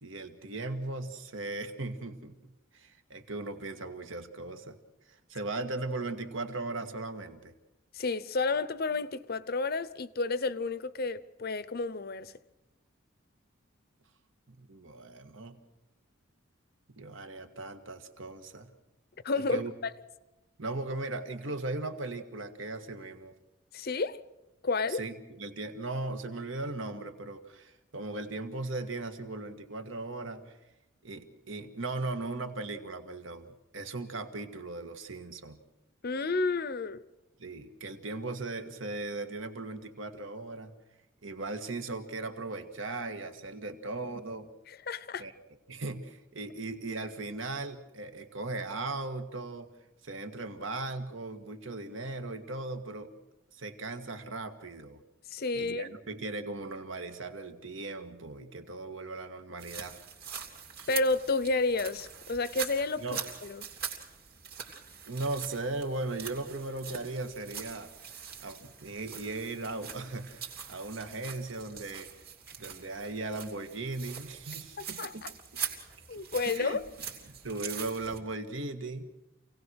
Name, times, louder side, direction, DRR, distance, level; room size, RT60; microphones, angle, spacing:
voice 1, 0.0-4.8 5.1-7.5 14.5-15.6 16.9-18.7 19.3-19.7 20.6-23.3 24.9-30.6 31.0-35.6 37.4-40.7 41.2-44.5 45.2-45.3 45.7-49.7 50.0-53.1 53.5-55.0 55.5-60.0 63.0-63.2 65.1-67.9 68.4-72.1 72.6-75.3 75.5-75.6 76.1-76.8 77.3-79.2, right 2 dB, 70° right, 1.7 m, -38 dB
voice 2, 7.9-12.3 19.2-19.9 23.7-24.2 24.6-25.0 36.0-37.0 44.9-45.3 55.3-55.9 60.9-63.6 75.0-75.3 76.1-76.8, left 3 dB, 50° left, 0.7 m, -31 dB
sound 1, 59.6-78.2, right 7 dB, 50° right, 2.9 m, -43 dB
27.5 x 18.0 x 6.3 m
head